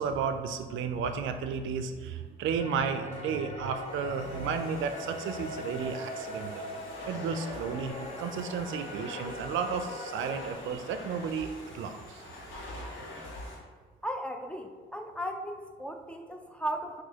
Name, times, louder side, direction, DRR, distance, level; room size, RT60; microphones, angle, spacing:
voice 1, 0.0-6.7 7.1-12.2, right 6 dB, 75° right, 8 dB, 0.4 m, -33 dB
sound 1, 2.6-10.5, left 1 dB, 30° left, 0.8 m, -41 dB
Domestic sounds home sounds, 2.9-13.6, left 1 dB, 85° left, 1.3 m, -46 dB
voice 2, 14.0-17.0, right 1 dB, 5° left, 4 dB, 0.3 m, -36 dB
6.0 x 2.6 x 2.8 m, 1.5 s
cardioid pair, 90°, 20 cm